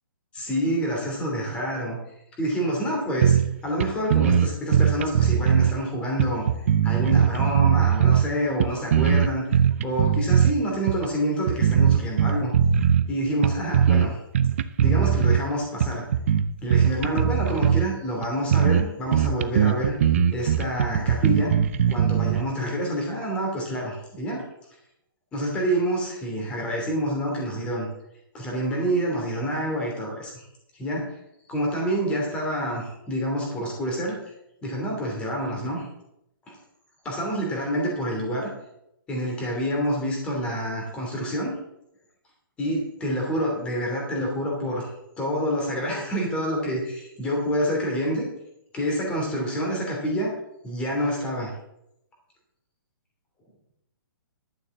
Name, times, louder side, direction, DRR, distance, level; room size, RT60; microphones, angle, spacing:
voice 1, 0.3-2.0 2.4-3.3 3.6-6.5 6.8-12.5 13.1-14.2 14.8-16.0 16.6-21.6 21.9-24.4 25.3-27.9 28.3-30.4 30.7-31.2 31.5-34.2 34.6-35.9 36.5-36.6 37.0-38.5 39.1-41.6 42.6-44.9 45.2-48.3 48.7-50.3 50.6-51.5, equal, 10° left, -1 dB, 2.9 m, -27 dB
sound 1, 3.2-3.5 3.8-3.9 4.1-5.7 6.2-8.3 8.6-10.5 10.9-11.1 11.5-13.1 13.4-14.1 14.3-15.4 15.8-17.9 18.2-18.3 18.5-18.8 19.1-22.4, right 8 dB, 35° right, 0.5 m, -20 dB
11.5 x 7.0 x 7.1 m, 0.82 s
hypercardioid pair, 175°, 12 cm